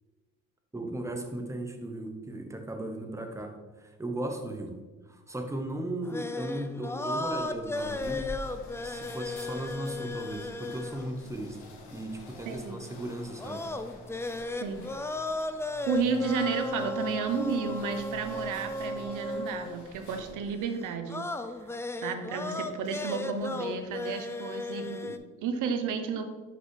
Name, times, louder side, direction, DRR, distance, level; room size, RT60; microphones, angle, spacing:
voice 1, 0.7-8.3 8.8-13.7, right 1 dB, 10° right, 3 dB, 0.9 m, -37 dB
sound 1, 6.0-11.3 13.4-19.9 21.1-25.2, left 2 dB, 10° left, 0.3 m, -35 dB
sound 2, 7.1-20.6, left 2 dB, 80° left, 1.1 m, -47 dB
voice 2, 12.5-12.8 14.5-14.9 15.9-21.2 22.0-26.2, right 5 dB, 90° right, 7 dB, 0.8 m, -32 dB
5.8 x 5.2 x 3.2 m, 1.2 s
cardioid pair, 90°, 30 cm